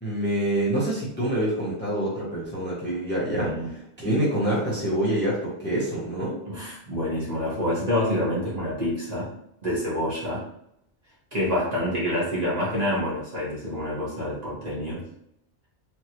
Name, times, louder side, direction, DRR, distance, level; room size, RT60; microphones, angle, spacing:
voice 1, 0.0-3.5 4.0-6.4, right 1 dB, 10° left, -6 dB, 0.7 m, -26 dB
voice 2, 3.3-3.7 6.5-9.3 9.6-10.4 11.3-15.0, left 1 dB, 35° right, -8 dB, 1.2 m, -27 dB
3.3 x 2.6 x 2.8 m, 0.75 s
omnidirectional pair, 1.2 m